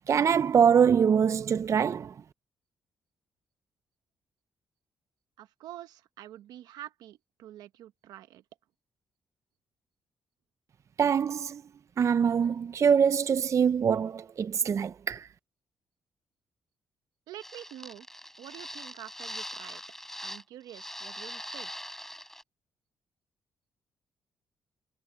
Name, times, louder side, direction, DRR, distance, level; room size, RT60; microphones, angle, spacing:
voice 1, 0.1-2.2 11.0-11.6 12.0-15.3, right 7 dB, 50° right, 0.5 m, -24 dB
voice 2, 5.4-8.4 17.3-18.1 18.4-19.8 20.2-21.7, right 13 dB, 85° right, 1.3 m, -47 dB
sound 1, 17.4-20.4 20.7-22.4, left 1 dB, 5° left, 4.3 m, -42 dB
supercardioid pair, 65°, 7 cm